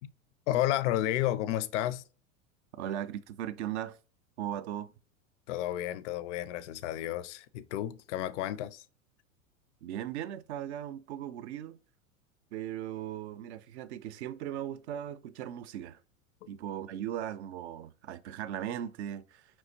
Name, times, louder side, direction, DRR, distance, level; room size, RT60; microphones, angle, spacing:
voice 1, 0.5-2.0 5.5-8.8, left 13 dB, 60° left, 0.5 m, -31 dB
voice 2, 2.8-4.0 4.4-4.9 9.8-11.8 12.5-16.0 16.5-19.5, right 11 dB, 55° right, 0.5 m, -38 dB
4.5 x 3.1 x 2.7 m
figure-of-eight pair, 90°, 41 cm